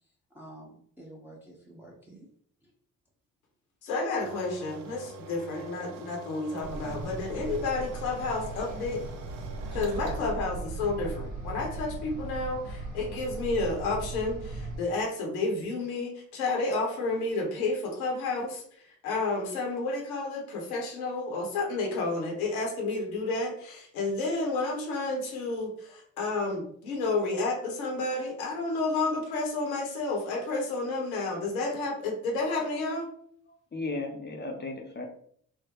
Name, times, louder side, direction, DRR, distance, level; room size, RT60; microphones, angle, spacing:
voice 1, 0.3-2.3 2.6-2.7, right 1 dB, 5° right, -3 dB, 0.9 m, -49 dB
voice 2, 3.8-9.0 9.7-33.1, left 3 dB, 75° left, 1 dB, 0.9 m, -31 dB
sound 1, 4.2-10.3, right 3 dB, 70° right, 0.6 m, -46 dB
sound 2, 6.6-14.8, right 3 dB, 50° right, 1.1 m, -38 dB
voice 3, 33.7-35.0, left 3 dB, 25° left, 2 dB, 0.8 m, -35 dB
4.6 x 2.1 x 2.9 m, 0.62 s
figure-of-eight pair, 45°, 42 cm